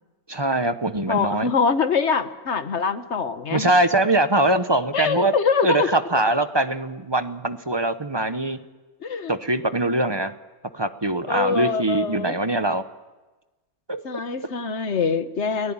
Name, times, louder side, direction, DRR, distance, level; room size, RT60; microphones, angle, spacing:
voice 1, 0.3-1.5 3.5-5.3 5.6-8.6 9.3-10.3 10.7-12.8 13.9-14.0, right 2 dB, 20° right, 10 dB, 0.8 m, -22 dB
voice 2, 1.1-3.7 4.9-5.9 9.0-9.4 11.3-12.4 14.0-15.7, left 5 dB, 50° left, 9 dB, 1.6 m, -24 dB
29.5 x 18.5 x 8.9 m, 1.2 s
omnidirectional pair, 1.6 m